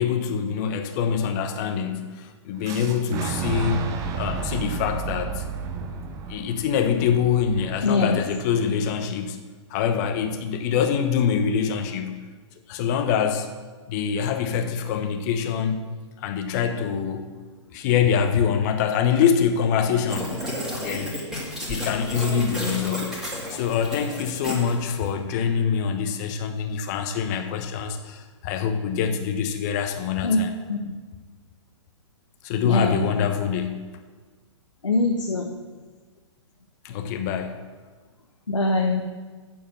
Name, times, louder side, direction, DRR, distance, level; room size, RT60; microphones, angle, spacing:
voice 1, 0.0-5.4 6.3-9.4 9.7-12.3 12.7-13.5 13.9-15.9 16.2-17.3 17.7-20.4 20.8-21.1 21.7-23.2 23.5-30.5 32.4-33.9 36.8-37.6, left 7 dB, 35° left, 7 dB, 1.1 m, -25 dB
Boom, 2.6-8.5, right 6 dB, 20° right, 0.8 m, -32 dB
voice 2, 7.8-8.2 30.2-30.4 30.7-30.8 32.6-33.0 34.8-35.5 38.5-39.0, left 3 dB, 80° left, 2 dB, 1.0 m, -22 dB
sound 1, 20.1-25.1, equal, 5° right, 2.4 m, -32 dB
8.9 x 6.9 x 6.8 m, 1.4 s
figure-of-eight pair, 120°, 16 cm